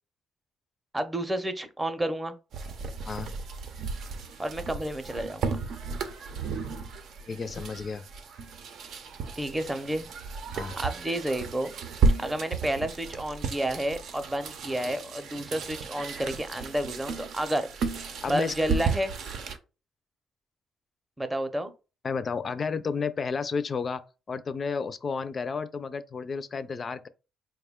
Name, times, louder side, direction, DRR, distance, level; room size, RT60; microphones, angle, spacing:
voice 1, 0.9-2.3 4.4-5.6 9.4-10.0 10.7-11.8 12.2-17.7 18.3-19.1 21.2-21.7, right 1 dB, 10° right, 0.6 m, -30 dB
sound 1, 2.5-19.6, right 4 dB, 75° right, 0.6 m, -33 dB
voice 2, 7.2-8.0 10.5-10.8 18.2-18.5 22.0-24.0 24.3-27.1, left 5 dB, 40° left, 0.4 m, -32 dB
4.6 x 2.2 x 3.5 m
cardioid pair, 90°, 0 cm